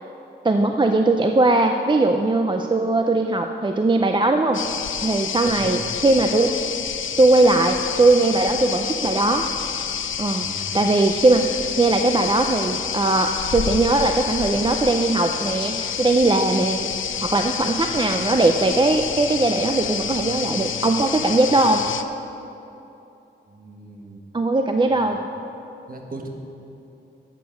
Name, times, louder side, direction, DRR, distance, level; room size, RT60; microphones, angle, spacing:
voice 1, 0.4-4.6 5.0-6.5 7.2-9.5 10.2-10.5 10.7-16.9 17.2-21.8 24.3-25.2, right 2 dB, 25° right, 5 dB, 0.4 m, -19 dB
sound 1, 4.5-22.0, left 8 dB, 90° left, 0.5 m, -28 dB
voice 2, 5.5-5.9 10.4-10.7 23.5-24.2 24.9-25.2 25.9-26.3, right 2 dB, 45° right, 2 dB, 1.4 m, -37 dB
11.0 x 8.3 x 6.6 m, 2.9 s
wide cardioid pair, 155°, 20 cm